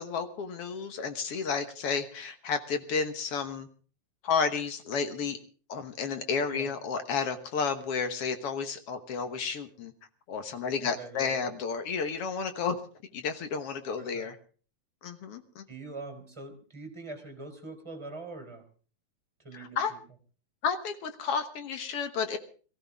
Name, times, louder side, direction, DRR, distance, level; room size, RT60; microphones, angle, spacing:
voice 1, 0.0-3.7 4.2-5.4 5.7-9.9 10.3-12.8 13.1-14.4 15.0-15.6 19.5-19.9 20.6-22.4, left 5 dB, 60° left, 9 dB, 2.0 m, -31 dB
voice 2, 10.8-11.5 14.0-14.3 15.7-18.6 19.4-20.0, right 3 dB, 10° right, 4 dB, 3.4 m, -43 dB
22.0 x 15.0 x 3.5 m, 0.39 s
omnidirectional pair, 3.4 m